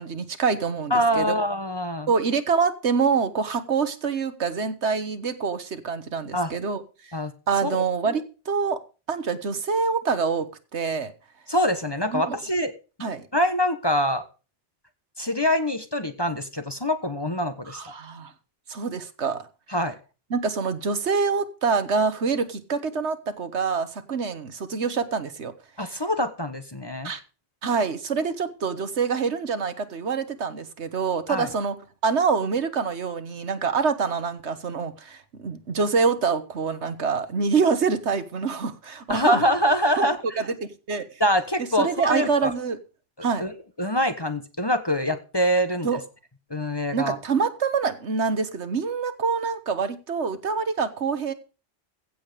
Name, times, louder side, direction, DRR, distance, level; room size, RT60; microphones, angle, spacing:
voice 1, 0.0-1.3 2.1-6.8 7.5-8.8 9.1-10.5 10.7-11.1 12.1-12.4 13.0-13.3 17.7-18.3 18.7-19.4 20.3-25.5 27.0-27.2 27.6-31.7 32.0-39.4 40.0-40.1 40.4-40.5 40.9-41.0 41.8-42.8 43.2-43.5 45.8-46.0 46.9-51.3, right 5 dB, 70° right, 1.5 m, -26 dB
voice 2, 0.9-2.1 6.3-6.5 7.1-7.3 7.6-7.8 11.5-12.7 13.3-14.2 15.2-17.9 19.7-20.0 25.8-27.1 31.3-31.5 39.1-40.4 41.2-42.5 43.4-46.0 46.5-47.2, equal, 20° left, 1.1 m, -24 dB
16.0 x 7.8 x 5.1 m
omnidirectional pair, 1.2 m